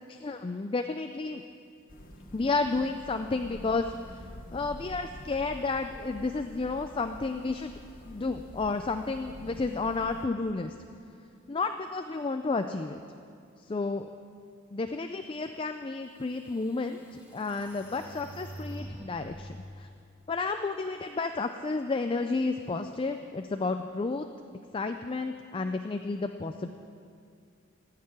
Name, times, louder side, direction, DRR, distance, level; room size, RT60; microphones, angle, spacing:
voice 1, 0.1-1.4 2.3-3.9 4.5-7.7 8.0-10.7 11.5-13.0 13.7-14.1 14.7-17.0 17.3-19.9 20.3-24.3 24.7-26.7, left 3 dB, 25° left, 7 dB, 0.4 m, -31 dB
sound 1, 1.9-10.3, left 1 dB, 40° left, 1.0 m, -47 dB
sound 2, 15.8-15.9 16.5-19.6, right 1 dB, 5° right, 1.4 m, -45 dB
15.0 x 6.7 x 9.8 m, 2.5 s
head